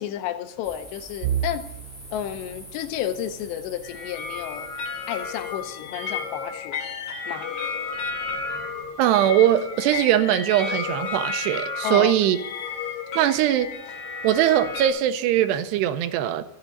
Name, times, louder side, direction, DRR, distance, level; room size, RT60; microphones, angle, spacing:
voice 1, 0.0-1.7 2.1-4.7 5.1-6.8 7.3-7.6 11.8-12.1, left 10 dB, 90° left, 3.0 m, -31 dB
sound 1, 0.6-6.5, left 1 dB, 10° left, 0.8 m, -46 dB
sound 2, 1.2-13.1 13.5-13.7 14.1-14.3 15.2-15.6, right 9 dB, 65° right, 2.1 m, -39 dB
sound 3, 3.8-14.9, left 5 dB, 55° left, 3.3 m, -32 dB
voice 2, 9.0-12.4 13.2-13.7 14.2-16.4, right 11 dB, 85° right, 2.7 m, -21 dB
14.0 x 7.4 x 6.5 m
omnidirectional pair, 5.0 m